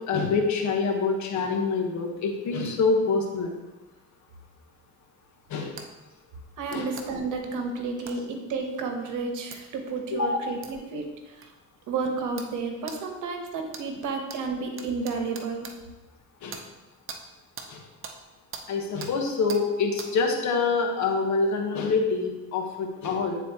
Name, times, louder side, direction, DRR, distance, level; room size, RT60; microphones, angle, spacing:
voice 1, 0.1-3.5 5.5-5.8 6.7-6.9 10.1-10.4 16.4-16.6 17.7-17.8 18.7-23.4, left 4 dB, 70° left, 2 dB, 1.1 m, -26 dB
sound 1, 5.8-5.9 6.7-7.1 8.1-8.2 9.5-9.6 10.6-10.7 11.4-11.5 12.4-12.5 12.9-13.0 13.7-13.9 14.3-14.4 14.8-15.7 16.5-16.6 17.1-17.2 17.6-17.7 18.0-18.2 18.5-18.7 19.0-19.1 19.5-19.6 20.0-20.1, right 5 dB, 45° right, 0.8 m, -40 dB
voice 2, 6.6-11.0 11.9-15.7, right 4 dB, 85° right, 4 dB, 1.0 m, -31 dB
9.2 x 4.1 x 2.9 m, 1.1 s
cardioid pair, 90°, 30 cm